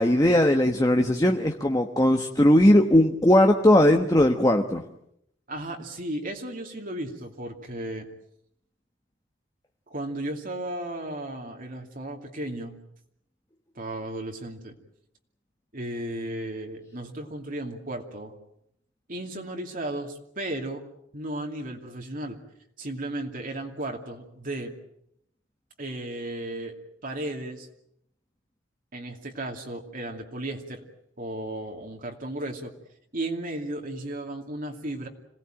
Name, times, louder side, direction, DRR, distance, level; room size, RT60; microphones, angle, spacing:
voice 1, 0.0-4.8, left 1 dB, 20° left, 4 dB, 1.2 m, -19 dB
voice 2, 5.5-8.1 9.9-12.8 13.7-14.8 15.7-18.3 19.1-20.8 21.1-22.4 22.8-24.7 25.8-26.7 27.0-27.7 28.9-30.8 31.2-32.7 33.1-35.1, right 1 dB, 45° right, 2 dB, 2.6 m, -34 dB
27.0 x 18.5 x 9.1 m, 0.75 s
head